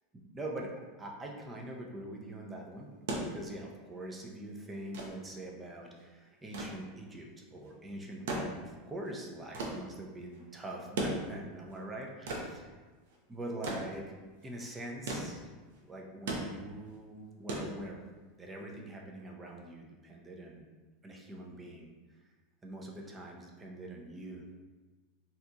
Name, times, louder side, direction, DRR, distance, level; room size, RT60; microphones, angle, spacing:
voice 1, 0.1-0.7 1.0-12.8 13.3-14.1 14.4-15.5 15.9-18.0 18.4-20.7 21.0-22.2 22.6-24.4, right 1 dB, 15° right, 0 dB, 0.5 m, -44 dB
sound 1, 2.8-18.3 19.6-19.7, right 2 dB, 80° right, 0.7 m, -40 dB
3.8 x 2.8 x 2.3 m, 1.2 s
supercardioid pair, 150°, 0 cm